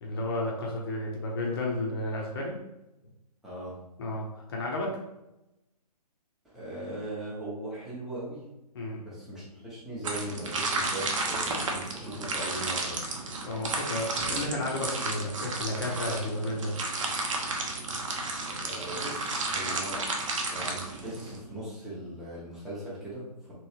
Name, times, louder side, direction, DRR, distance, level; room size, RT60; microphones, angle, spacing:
voice 1, 0.0-2.6 4.0-4.9 8.7-9.0 13.4-16.7, left 1 dB, 35° left, -1 dB, 0.7 m, -32 dB
voice 2, 3.4-3.8 6.5-8.5 9.0-13.1 18.6-20.1 20.5-23.5, right 1 dB, ahead, -9 dB, 0.7 m, -39 dB
sound 1, 10.0-21.4, right 3 dB, 50° right, 0.7 m, -32 dB
3.1 x 3.0 x 2.7 m, 0.92 s
figure-of-eight pair, 135°, 21 cm